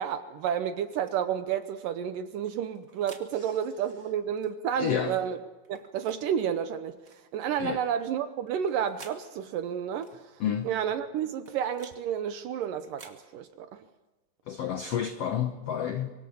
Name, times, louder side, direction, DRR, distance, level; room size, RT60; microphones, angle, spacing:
voice 1, 0.0-5.4 5.7-7.0 7.3-10.1 10.6-13.8, right 9 dB, 70° right, 10 dB, 2.3 m, -31 dB
sound 1, 0.9-1.2 2.5-3.3 4.3-4.6 5.6-6.2 7.0-7.2 8.5-9.2 10.0-10.2 11.2-12.0 12.8-13.2, right 4 dB, 30° right, 1.7 m, -52 dB
voice 2, 4.8-5.2 7.6-7.8 10.4-10.7 14.5-16.1, left 9 dB, 80° left, 7 dB, 1.4 m, -30 dB
25.0 x 25.0 x 7.1 m, 1.1 s
omnidirectional pair, 4.4 m